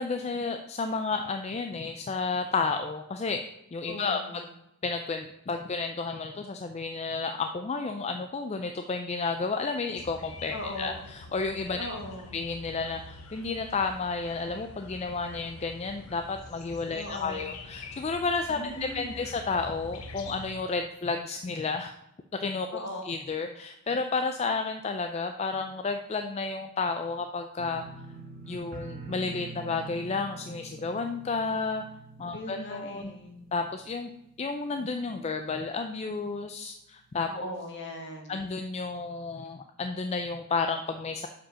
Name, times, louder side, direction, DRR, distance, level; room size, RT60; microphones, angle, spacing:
voice 1, 0.0-3.4 3.7-4.4 4.8-12.0 12.3-21.9 22.4-27.8 28.5-31.8 32.2-33.1 33.5-34.1 34.4-37.3 38.3-41.3, left 4 dB, 30° left, 6 dB, 0.3 m, -31 dB
voice 2, 3.9-4.5 10.5-11.0 11.8-12.4 16.9-17.5 18.5-19.2 22.7-23.0 23.4-23.5 32.3-33.5 37.3-38.4, left 1 dB, 55° left, 2 dB, 1.6 m, -39 dB
sound 1, 10.0-20.5, left 3 dB, 75° left, 1.0 m, -46 dB
sound 2, 27.6-34.4 34.7-35.3 35.7-35.8, right 3 dB, 40° right, 1.0 m, -45 dB
7.3 x 5.1 x 5.6 m, 0.85 s
head